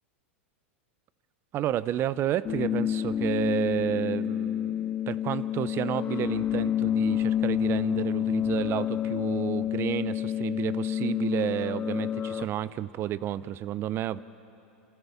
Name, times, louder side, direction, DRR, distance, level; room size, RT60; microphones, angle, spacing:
voice 1, 1.5-14.2, right 12 dB, 35° right, 17 dB, 0.7 m, -31 dB
sound 1, 2.4-12.4, left 10 dB, 25° left, 0.4 m, -29 dB
27.0 x 14.0 x 7.2 m, 2.7 s
hypercardioid pair, 100°, 7 cm